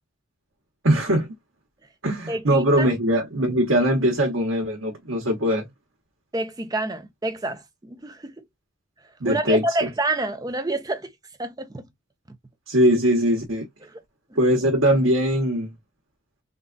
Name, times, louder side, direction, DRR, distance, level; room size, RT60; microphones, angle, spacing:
voice 1, 0.8-1.3 2.0-5.7 9.2-9.9 12.7-13.6 14.4-15.7, equal, 80° right, 1.2 m, -21 dB
voice 2, 2.3-2.9 6.3-8.5 9.2-11.1 11.4-11.8 13.8-14.0 14.3-14.4, right 2 dB, 20° right, 0.5 m, -28 dB
3.8 x 2.3 x 2.4 m
head